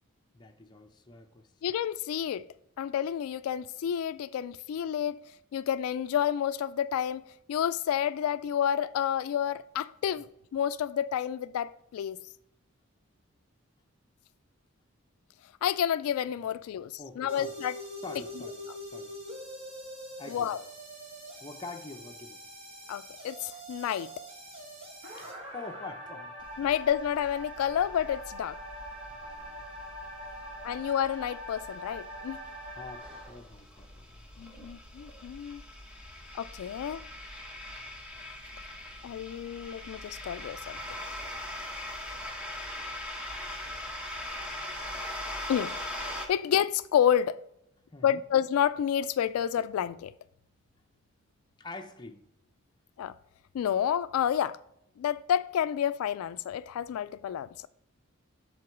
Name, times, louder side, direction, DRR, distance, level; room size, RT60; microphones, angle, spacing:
voice 1, 0.3-1.5 17.0-17.5 18.0-18.6 18.9-19.1 20.2-20.5 21.4-22.4 25.2-26.3 29.2-29.7 32.4-34.6 47.9-48.2 51.6-52.2, left 3 dB, 20° left, 0.7 m, -45 dB
voice 2, 1.6-2.5 2.8-5.2 5.5-7.2 7.5-12.3 15.6-17.7 20.3-20.6 22.9-24.1 26.6-28.6 30.6-32.4 34.4-35.6 36.3-37.0 39.0-40.8 45.5-45.7 46.3-47.4 48.0-50.1 53.0-53.1 53.5-54.6 55.0-57.7, left 9 dB, 85° left, 0.3 m, -29 dB
sound 1, 17.3-33.3, equal, 30° right, 1.9 m, -43 dB
sound 2, 26.4-46.3, left 1 dB, 5° right, 1.0 m, -42 dB
7.7 x 3.9 x 5.9 m
head